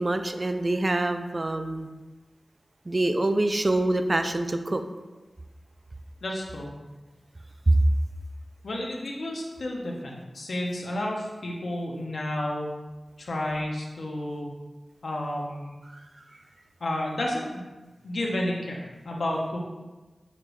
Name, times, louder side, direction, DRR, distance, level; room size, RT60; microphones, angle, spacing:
voice 1, 0.0-1.9 2.9-4.8 7.7-7.8 15.9-16.0, right 2 dB, 35° right, 7 dB, 0.3 m, -25 dB
voice 2, 6.2-6.7 8.6-12.7 13.2-14.5 15.0-15.8 16.8-17.6 18.0-19.6, left 1 dB, 80° left, -1 dB, 0.8 m, -31 dB
6.5 x 2.6 x 3.2 m, 1.2 s
wide cardioid pair, 95°, 0 cm